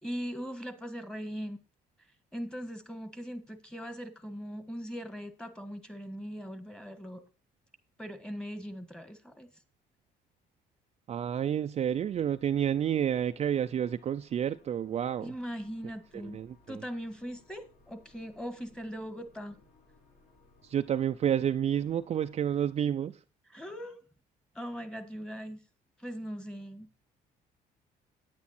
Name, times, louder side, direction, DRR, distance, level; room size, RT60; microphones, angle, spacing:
voice 1, 0.0-1.6 2.3-7.2 8.0-9.5 15.2-16.4 16.7-19.6 23.5-24.0 24.5-25.6 26.0-26.9, equal, 5° left, 1.6 m, -40 dB
voice 2, 11.1-15.3 16.1-16.8 20.6-23.2, right 9 dB, 40° right, 0.5 m, -30 dB
sound 1, 11.9-22.8, left 2 dB, 55° left, 6.5 m, -64 dB
9.7 x 9.4 x 4.3 m
cardioid pair, 110°, 17 cm